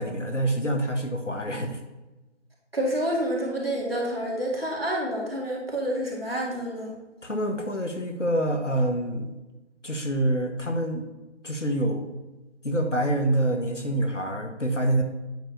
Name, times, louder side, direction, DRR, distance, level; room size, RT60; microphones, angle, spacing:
voice 1, 0.0-1.8 7.2-9.4 9.8-11.1 11.4-12.1 12.6-15.0, right 1 dB, 85° left, 4 dB, 1.4 m, -26 dB
voice 2, 2.7-6.9, right 1 dB, 55° right, -2 dB, 2.1 m, -28 dB
8.8 x 6.5 x 2.8 m, 1.1 s
figure-of-eight pair, 170°, 36 cm